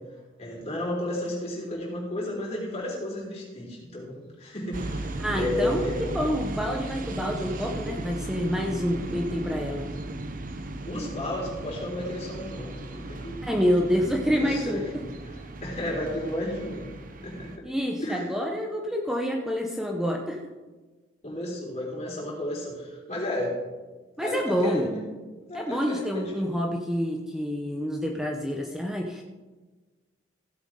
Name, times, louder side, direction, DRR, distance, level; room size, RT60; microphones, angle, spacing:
voice 1, 0.4-6.1 10.8-13.4 14.3-14.9 15.3-16.9 17.2-17.7 18.0-18.3 21.2-23.6 24.2-25.0 25.5-26.5, left 1 dB, 35° left, -4 dB, 4.0 m, -33 dB
sound 1, 4.7-17.6, right 2 dB, 45° right, 0.8 m, -36 dB
voice 2, 5.2-5.8 6.1-9.9 13.4-15.0 17.6-20.4 24.2-24.9 25.5-29.2, equal, 5° right, 0 dB, 0.8 m, -27 dB
16.0 x 8.1 x 3.8 m, 1.3 s
head